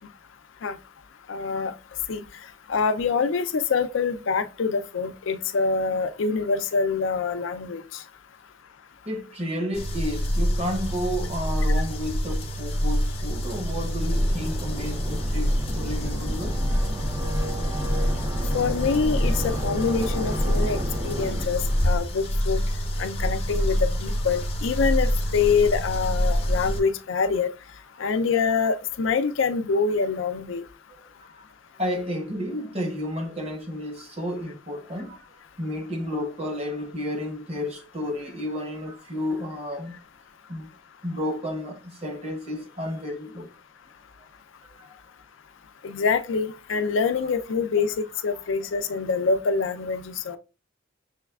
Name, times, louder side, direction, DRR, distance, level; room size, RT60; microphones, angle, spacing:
voice 1, 1.3-1.7 2.1-2.2 2.7-8.0 18.5-22.6 23.0-27.5 28.0-30.6 45.8-50.4, left 5 dB, 75° left, 0.4 m, -25 dB
voice 2, 9.0-16.8 18.2-18.4 28.0-28.1 31.3-31.4 31.7-35.3 35.6-40.0 40.5-40.7 41.0-43.5 44.8-44.9 48.3-48.4, equal, 30° right, 0.8 m, -32 dB
sound 1, 9.7-26.8, equal, 30° left, 0.6 m, -26 dB
sound 2, 13.5-22.0, equal, 15° right, 0.4 m, -33 dB
6.1 x 3.2 x 2.3 m
head